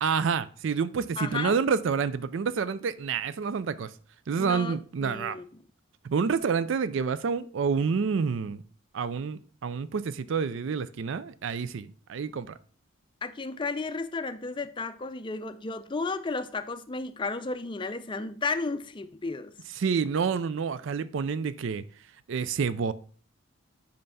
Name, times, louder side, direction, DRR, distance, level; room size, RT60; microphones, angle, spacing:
voice 1, 0.0-3.9 4.3-5.4 6.0-8.6 8.9-12.6 19.8-21.8 22.3-22.9, right 6 dB, 60° right, 0.4 m, -28 dB
voice 2, 1.2-1.5 4.4-5.5 13.2-19.5, left 3 dB, 25° left, 0.4 m, -33 dB
5.6 x 5.2 x 5.4 m
head